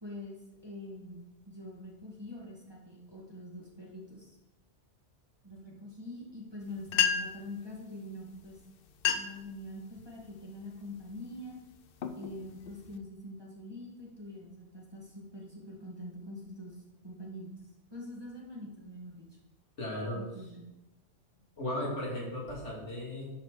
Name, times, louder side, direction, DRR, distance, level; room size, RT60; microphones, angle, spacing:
voice 1, 0.0-4.4 5.4-8.6 9.1-11.6 12.2-17.5 17.9-19.3 20.1-20.7, left 1 dB, 20° right, -3 dB, 1.7 m, -45 dB
sound 1, 6.6-6.7 6.9-7.5 8.4-8.5 8.9-9.5 10.0-10.3 10.9-11.2 11.7-13.0, left 8 dB, 60° left, 0.7 m, -31 dB
voice 2, 19.8-20.2 21.6-23.3, left 1 dB, 75° left, -4 dB, 2.9 m, -36 dB
11.5 x 4.2 x 4.8 m, 0.97 s
omnidirectional pair, 1.2 m